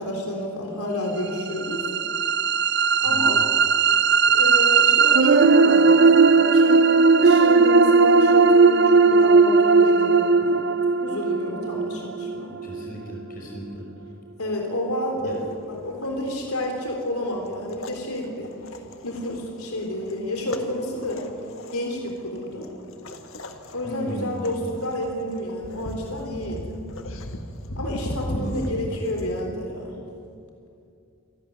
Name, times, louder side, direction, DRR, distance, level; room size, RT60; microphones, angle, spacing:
voice 1, 0.0-1.9 3.0-3.4 4.2-6.9 7.2-10.6 11.0-12.5 14.4-18.5 19.0-21.2 21.7-22.7 23.7-26.8 27.8-30.0, left 1 dB, 90° left, 1 dB, 3.8 m, -30 dB
sound 1, 1.3-13.4, right 4 dB, 50° right, 0.6 m, -17 dB
voice 2, 3.0-3.4 12.6-13.9 15.2-15.4 23.8-24.7 28.2-28.7, equal, 40° left, -1 dB, 5.7 m, -35 dB
sound 2, 15.3-29.4, left 1 dB, 65° left, 1.7 m, -38 dB
27.0 x 12.5 x 9.9 m, 2.5 s
head